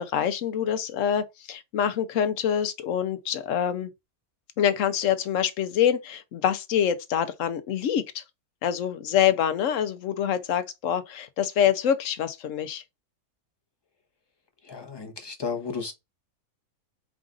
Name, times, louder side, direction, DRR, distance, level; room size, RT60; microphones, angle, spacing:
voice 1, 0.0-3.9 4.6-8.2 8.6-12.8, left 9 dB, 65° left, 0.9 m, -25 dB
voice 2, 14.7-15.9, left 5 dB, 20° left, 0.8 m, -33 dB
4.8 x 2.5 x 3.6 m
omnidirectional pair, 1.6 m